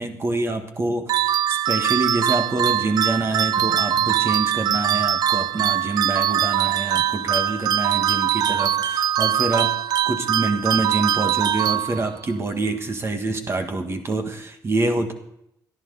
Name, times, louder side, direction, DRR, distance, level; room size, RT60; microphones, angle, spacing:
voice 1, 0.0-9.7 10.0-15.1, right 2 dB, 35° right, 6 dB, 1.6 m, -26 dB
sound 1, 1.1-12.3, right 10 dB, 65° right, 0.4 m, -22 dB
18.0 x 12.0 x 4.0 m, 0.78 s
cardioid pair, 115°, 8 cm